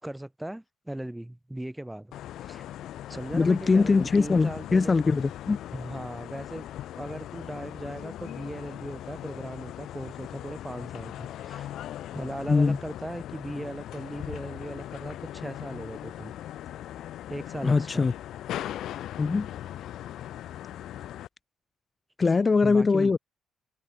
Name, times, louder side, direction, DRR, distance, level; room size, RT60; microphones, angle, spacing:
voice 1, 0.0-2.1 2.4-2.6 3.1-5.0 5.7-6.7 6.9-11.7 12.1-16.3 17.3-18.1 22.6-23.1, right 1 dB, 5° right, 6.5 m, -38 dB
sound 1, 2.1-21.3, left 12 dB, 80° left, 2.9 m, -39 dB
voice 2, 3.3-5.6 12.5-12.8 17.6-18.1 19.2-19.5 22.2-23.2, left 4 dB, 30° left, 4.8 m, -22 dB
cardioid pair, 90°, 0 cm